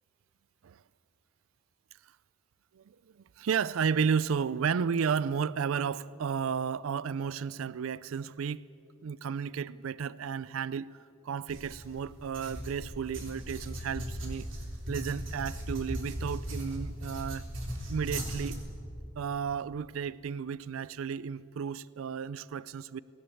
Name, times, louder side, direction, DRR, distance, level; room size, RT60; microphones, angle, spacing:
voice 1, 3.4-8.7 9.0-11.0 11.2-14.5 14.9-17.5 17.9-18.6 19.2-23.0, right 6 dB, 85° right, 0.4 m, -33 dB
sound 1, 11.5-18.5, equal, 65° right, 3.6 m, -38 dB
19.0 x 18.5 x 8.5 m
head